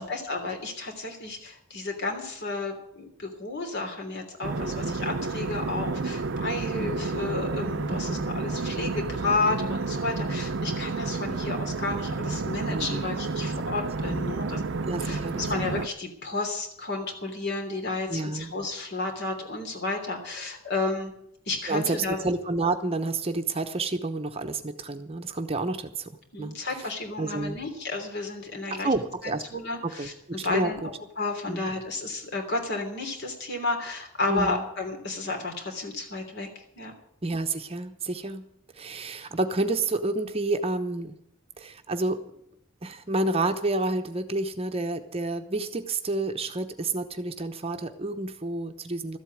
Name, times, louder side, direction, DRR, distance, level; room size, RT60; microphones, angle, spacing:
voice 1, 0.0-14.6 15.0-21.1 21.5-22.2 26.3-28.9 29.5-36.9, left 3 dB, 55° left, 2 dB, 3.2 m, -32 dB
sound 1, 4.4-15.9, right 3 dB, 60° right, 0.6 m, -30 dB
voice 2, 4.6-5.0 7.9-8.2 12.7-13.1 14.0-14.4 14.8-15.5 18.1-18.5 21.7-26.9 27.2-27.6 28.7-29.4 29.8-30.1 30.4-30.9 31.5-31.7 34.3-34.6 37.2-38.4 38.7-41.2 41.6-42.2 42.8-49.2, right 2 dB, 30° right, 7 dB, 0.9 m, -29 dB
13.5 x 8.2 x 9.5 m, 0.73 s
head